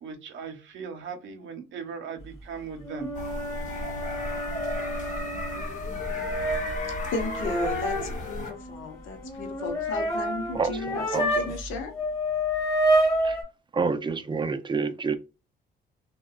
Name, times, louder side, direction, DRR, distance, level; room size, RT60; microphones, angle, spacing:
voice 1, 0.0-3.1, right 5 dB, 70° right, 0.7 m, -38 dB
sound 1, 2.8-11.7 11.9-13.4, equal, 15° left, 1.1 m, -29 dB
sound 2, 3.1-8.5, left 1 dB, 40° left, 0.9 m, -34 dB
voice 2, 6.8-11.9, left 4 dB, 85° left, 0.8 m, -35 dB
voice 3, 10.5-11.5 13.2-13.4 13.7-15.2, right 4 dB, 25° right, 0.5 m, -29 dB
2.8 x 2.2 x 2.3 m
cardioid pair, 90°, 20 cm